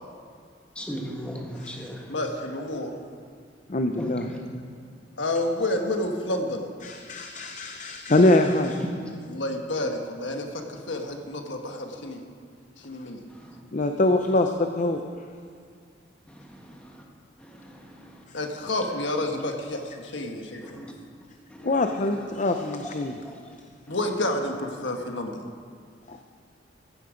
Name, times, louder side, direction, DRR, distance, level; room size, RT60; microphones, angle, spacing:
voice 1, 0.7-2.0 4.0-4.4 13.3-13.6 16.3-16.6 17.4-18.1 20.6-20.8 21.5-21.7 23.2-23.3 23.9-24.0, equal, 5° left, -1 dB, 1.6 m, -38 dB
voice 2, 2.1-3.0 5.2-6.7 9.3-12.2 12.8-13.2 18.3-20.8 23.9-25.4, left 1 dB, 80° left, 3 dB, 1.4 m, -29 dB
voice 3, 3.7-4.3 6.8-8.9 13.7-15.0 21.6-23.2 26.1-26.2, left 2 dB, 40° left, 5 dB, 0.6 m, -23 dB
15.5 x 11.5 x 5.2 m, 2.1 s
head